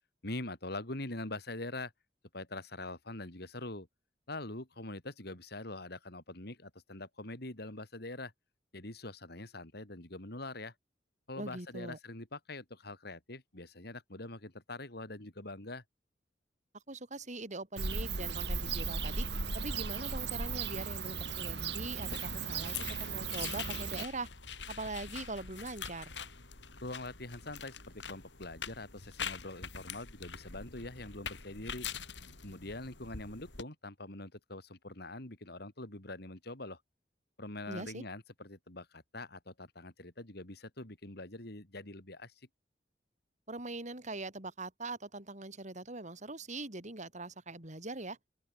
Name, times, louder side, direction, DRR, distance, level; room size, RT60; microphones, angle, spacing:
voice 1, 0.2-1.9 2.3-3.9 4.3-8.3 8.7-10.7 11.3-15.8 26.8-31.9 32.4-36.8 37.4-42.3, left 2 dB, 65° left, 4.1 m, -44 dB
voice 2, 11.4-12.0 16.9-19.3 19.5-22.7 23.0-24.3 24.7-26.1 37.7-38.0 43.5-48.2, right 2 dB, 45° right, 4.9 m, -42 dB
Bird / Cricket, 17.8-24.0, right 4 dB, 70° right, 5.1 m, -36 dB
sound 1, 22.0-33.6, left 7 dB, 85° left, 3.9 m, -44 dB
open air
head